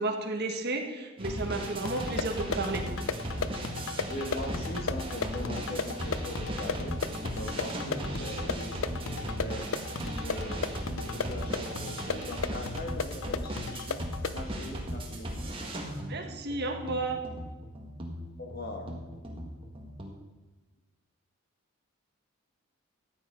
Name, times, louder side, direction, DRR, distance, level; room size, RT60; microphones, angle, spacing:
voice 1, 0.0-2.9 16.1-17.2, right 2 dB, 45° right, 3 dB, 1.4 m, -32 dB
sound 1, 1.2-20.1, right 1 dB, 25° right, 1.7 m, -37 dB
sound 2, 1.9-14.4, left 5 dB, 65° left, 0.6 m, -36 dB
voice 2, 4.1-6.9 7.4-9.7 10.0-10.7 10.9-14.0 14.3-15.3 18.4-18.9, left 1 dB, 45° left, 3 dB, 1.7 m, -40 dB
14.0 x 9.3 x 5.2 m, 1.2 s
head